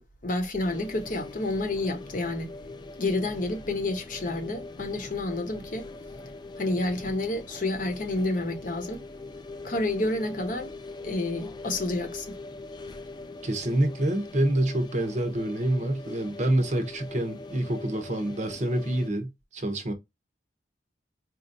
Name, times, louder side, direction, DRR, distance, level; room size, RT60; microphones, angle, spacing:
voice 1, 0.0-2.5 3.0-5.9 6.6-9.0 9.6-10.7 11.0-12.4, left 2 dB, 50° left, 0.8 m, -29 dB
sound 1, 0.6-19.1, left 2 dB, 25° left, 0.4 m, -42 dB
voice 2, 13.4-19.9, right 1 dB, 40° right, 0.7 m, -27 dB
4.2 x 2.5 x 2.6 m
head